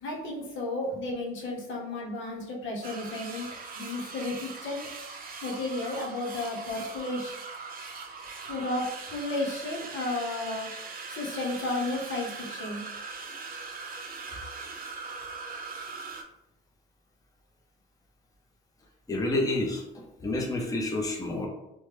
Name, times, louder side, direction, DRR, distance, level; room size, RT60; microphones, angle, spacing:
voice 1, 0.0-3.5 3.8-4.8 5.4-7.3 8.5-8.8 9.1-10.7 11.1-12.8, left 2 dB, 75° left, -2 dB, 0.9 m, -33 dB
sound 1, 2.8-16.2, right 4 dB, 45° right, 0.5 m, -41 dB
voice 2, 19.1-19.8 20.2-21.5, left 2 dB, 15° left, 0 dB, 0.6 m, -28 dB
3.1 x 2.1 x 3.2 m, 0.88 s
cardioid pair, 90°, 20 cm